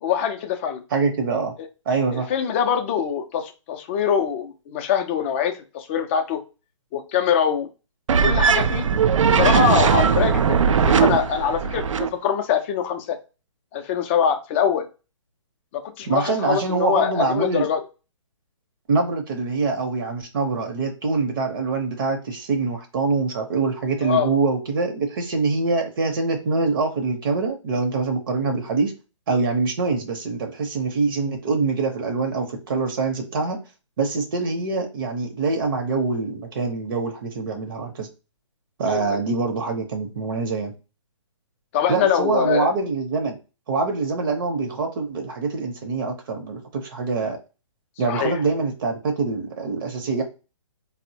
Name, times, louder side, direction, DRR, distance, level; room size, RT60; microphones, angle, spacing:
voice 1, 0.0-0.8 2.1-6.4 6.9-7.7 8.2-8.9 9.3-13.2 13.7-14.9 15.7-17.8 24.0-24.3 38.9-39.2 41.7-42.7 48.1-48.3, left 8 dB, 25° left, 6 dB, 0.4 m, -23 dB
voice 2, 0.9-1.5 1.9-2.3 16.1-17.7 18.9-28.9 29.3-33.6 34.0-38.1 38.8-40.7 41.9-43.4 43.7-47.4 48.0-50.2, right 4 dB, 45° right, 5 dB, 0.7 m, -24 dB
sound 1, 8.1-12.1, right 6 dB, 75° right, 0.4 m, -19 dB
4.1 x 2.1 x 2.7 m, 0.31 s
hypercardioid pair, 145°, 16 cm